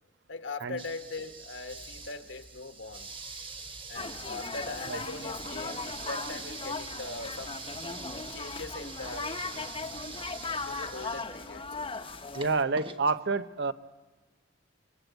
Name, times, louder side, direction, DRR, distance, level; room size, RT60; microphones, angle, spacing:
voice 1, 0.3-3.1 3.9-7.6 8.3-9.7 10.5-11.9, left 3 dB, 65° left, 8 dB, 1.3 m, -41 dB
sound 1, 0.8-13.1, right 4 dB, 25° right, 1.4 m, -44 dB
sound 2, 4.0-12.6, left 4 dB, 25° left, 1.0 m, -38 dB
voice 2, 12.3-13.7, right 4 dB, 60° right, 13 dB, 0.9 m, -28 dB
29.5 x 23.5 x 8.2 m, 1.2 s
head